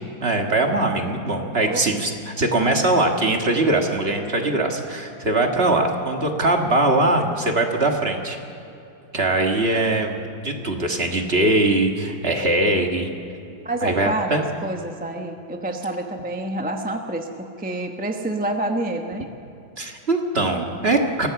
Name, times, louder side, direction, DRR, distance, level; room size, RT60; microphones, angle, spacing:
voice 1, 0.2-8.4 9.1-13.1 13.8-14.5 19.8-21.3, right 2 dB, 30° right, 3 dB, 1.8 m, -21 dB
voice 2, 13.6-19.3, right 1 dB, 5° right, 3 dB, 0.7 m, -28 dB
24.5 x 17.0 x 7.1 m, 2.8 s
omnidirectional pair, 2.1 m